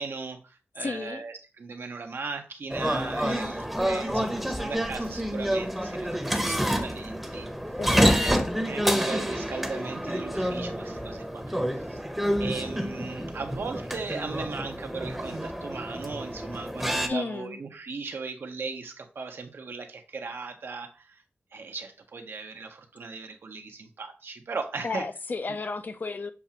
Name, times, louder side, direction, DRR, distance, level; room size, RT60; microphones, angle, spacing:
voice 1, 0.0-7.5 8.2-8.4 8.7-12.0 12.4-21.2 21.5-25.1 25.5-25.6, right 4 dB, 80° right, 0.8 m, -37 dB
voice 2, 0.8-1.2 7.8-8.5 17.1-17.6 24.8-26.3, left 4 dB, 50° left, 0.5 m, -33 dB
sound 1, 2.7-17.1, equal, 5° right, 0.7 m, -28 dB
6.9 x 2.4 x 2.8 m
wide cardioid pair, 65°, 4 cm